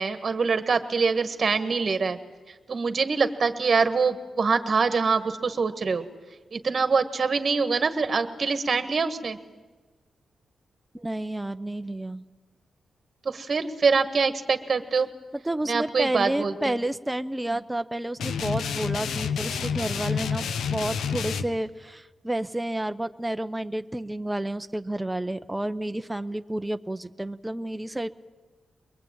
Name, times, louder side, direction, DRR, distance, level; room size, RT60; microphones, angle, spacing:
voice 1, 0.0-2.2 2.5-6.0 6.5-9.4 13.2-15.1 15.7-16.7, right 4 dB, 45° right, 9 dB, 1.6 m, -24 dB
voice 2, 10.9-12.2 15.4-28.1, right 1 dB, 10° right, 11 dB, 0.7 m, -30 dB
sound 1, 18.2-21.4, left 6 dB, 85° left, 1.1 m, -29 dB
23.0 x 21.5 x 8.8 m, 1.3 s
cardioid pair, 80°, 0 cm